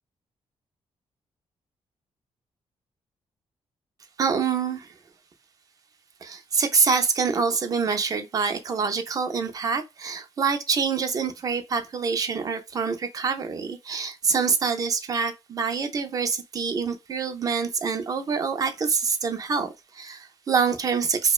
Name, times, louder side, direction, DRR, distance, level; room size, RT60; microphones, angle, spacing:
voice 1, 4.2-4.9 6.2-21.3, right 5 dB, 35° right, 0.4 m, -26 dB
2.8 x 2.0 x 2.3 m
wide cardioid pair, 165°, 11 cm